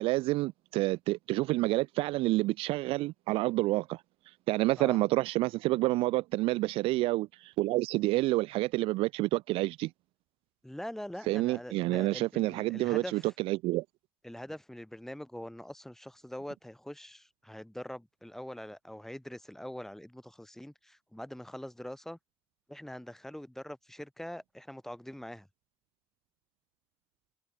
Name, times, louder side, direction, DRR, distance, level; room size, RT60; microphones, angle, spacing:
voice 1, 0.0-4.0 4.5-9.9 11.3-13.8, right 19 dB, 70° right, 0.5 m, -28 dB
voice 2, 10.6-13.3 14.2-22.2 22.7-25.5, equal, 5° left, 2.5 m, -43 dB
hypercardioid pair, 60°, 10 cm